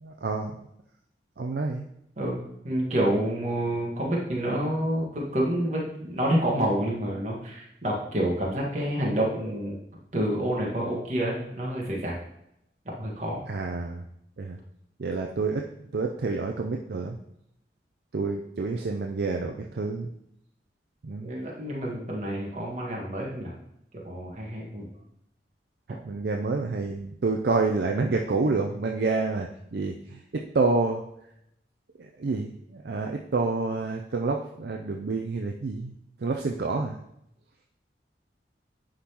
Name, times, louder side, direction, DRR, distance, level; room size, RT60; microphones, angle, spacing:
voice 1, 0.0-0.6 1.4-1.8 13.5-14.0 14.4-14.6 15.0-15.6 15.9-17.2 18.1-20.1 21.0-21.3 26.0-31.0 32.2-35.9 36.2-37.0, right 3 dB, 60° right, 2 dB, 0.4 m, -28 dB
voice 2, 2.6-9.8 10.1-12.1 13.0-13.4 21.2-23.5 24.0-24.9, right 1 dB, 40° right, -3 dB, 1.6 m, -28 dB
10.0 x 3.7 x 2.9 m, 0.79 s
head